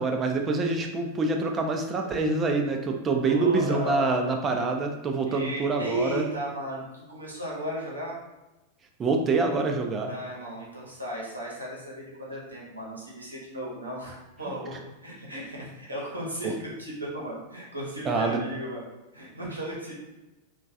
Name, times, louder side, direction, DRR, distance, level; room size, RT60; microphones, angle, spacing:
voice 1, 0.0-6.2 9.0-10.1 16.4-16.5 18.1-18.4, right 3 dB, 25° right, 3 dB, 0.4 m, -26 dB
voice 2, 3.3-4.2 5.2-8.2 10.0-18.8 19.1-19.9, equal, 80° right, -4 dB, 0.8 m, -35 dB
3.0 x 2.2 x 2.6 m, 1.0 s
figure-of-eight pair, 90°, 0 cm